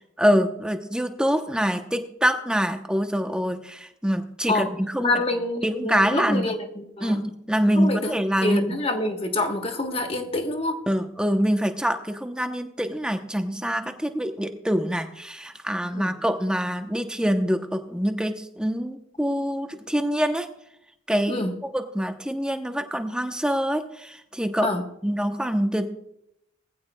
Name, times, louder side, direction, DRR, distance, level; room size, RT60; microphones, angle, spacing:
voice 1, 0.0-5.1 5.6-6.6 7.0-8.6 10.9-20.5 21.1-21.4 21.7-24.7 25.0-25.9, equal, 5° right, 6 dB, 0.7 m, -25 dB
voice 2, 5.0-6.6 7.0-7.2 7.8-8.1 8.4-10.8 15.9-16.1 21.3-21.5 24.6-24.8, left 2 dB, 30° left, 5 dB, 1.2 m, -26 dB
19.5 x 15.0 x 2.2 m, 0.78 s
head